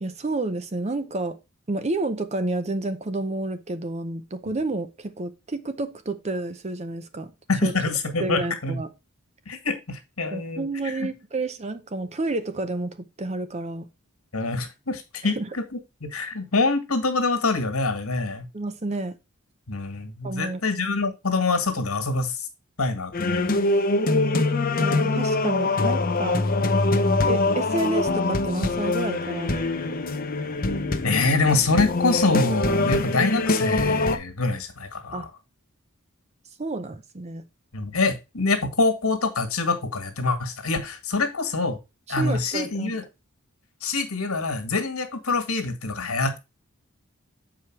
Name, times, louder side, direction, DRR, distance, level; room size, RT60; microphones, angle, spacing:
voice 1, 0.0-1.4 1.7-7.3 7.6-7.7 8.2-8.9 10.3-13.9 15.2-15.5 18.5-19.2 20.2-20.6 24.8-26.5 27.3-29.5 35.1-35.3 36.6-37.5 42.1-42.9, right 2 dB, 30° right, 0.7 m, -30 dB
voice 2, 7.5-8.8 9.5-11.1 14.3-15.8 16.1-18.5 19.7-22.5 22.8-23.6 31.0-35.3 37.7-41.8 42.1-43.0 43.8-46.4, left 3 dB, 80° left, 1.9 m, -25 dB
sound 1, 23.1-34.2, left 2 dB, 40° left, 0.8 m, -23 dB
7.2 x 4.9 x 4.7 m
head